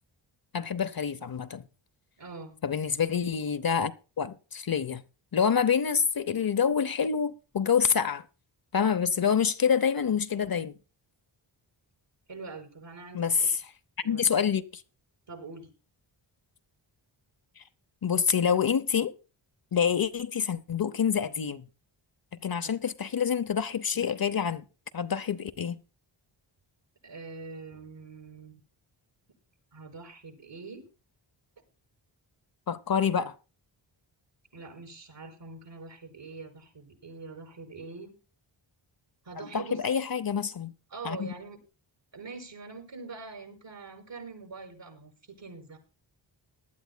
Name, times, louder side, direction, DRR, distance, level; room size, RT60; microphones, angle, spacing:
voice 1, 0.5-1.6 2.6-5.0 5.3-8.2 8.7-10.7 13.1-13.6 14.0-14.8 18.0-19.1 19.7-21.7 22.4-24.6 24.9-25.8 32.7-33.3 39.4-40.7 41.0-41.3, left 7 dB, 45° left, 0.7 m, -27 dB
voice 2, 2.2-2.6 12.3-13.5 14.0-14.3 15.3-15.7 22.6-22.7 27.0-28.6 29.7-30.9 34.5-38.2 39.2-40.0 40.9-41.6 42.1-45.8, right 4 dB, 60° right, 6.0 m, -44 dB
20.0 x 11.5 x 2.2 m
cardioid pair, 55°, 49 cm